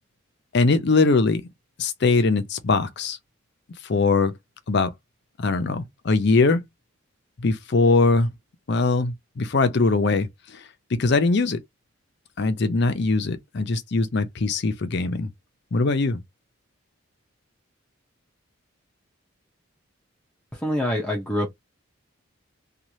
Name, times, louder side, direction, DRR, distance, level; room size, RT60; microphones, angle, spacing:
voice 1, 0.5-1.5 1.8-3.2 3.8-4.3 4.7-4.9 5.4-6.6 7.4-8.3 8.7-10.6 10.9-11.6 12.4-15.3 15.7-16.2, left 3 dB, 50° left, 0.5 m, -21 dB
voice 2, 20.5-21.5, left 1 dB, 5° left, 0.6 m, -25 dB
3.1 x 2.3 x 2.7 m
head